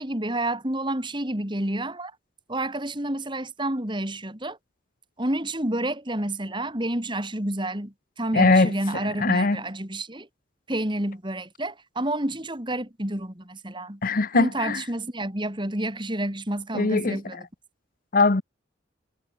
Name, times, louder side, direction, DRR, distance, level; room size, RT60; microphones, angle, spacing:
voice 1, 0.0-2.1 2.5-4.6 5.2-10.3 10.7-14.0 14.3-17.5, right 1 dB, 25° right, 3.1 m, -29 dB
voice 2, 8.3-8.7 9.2-9.6 14.0-14.8 16.7-17.2 18.1-18.4, left 3 dB, 45° left, 0.9 m, -20 dB
head